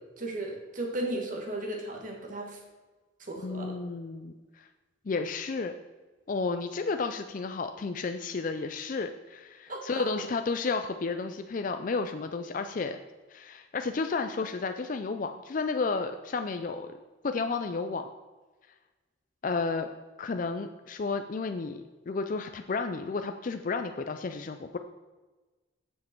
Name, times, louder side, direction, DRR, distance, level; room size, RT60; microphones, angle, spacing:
voice 1, 0.2-2.6 3.3-3.7 9.7-10.0, right 1 dB, 40° right, 0 dB, 1.9 m, -35 dB
voice 2, 3.4-4.7 5.1-5.7 6.3-13.0 13.3-16.9 17.2-18.1 19.4-19.9 20.2-24.8, left 4 dB, 40° left, 7 dB, 0.4 m, -32 dB
9.4 x 7.4 x 4.5 m, 1.3 s
head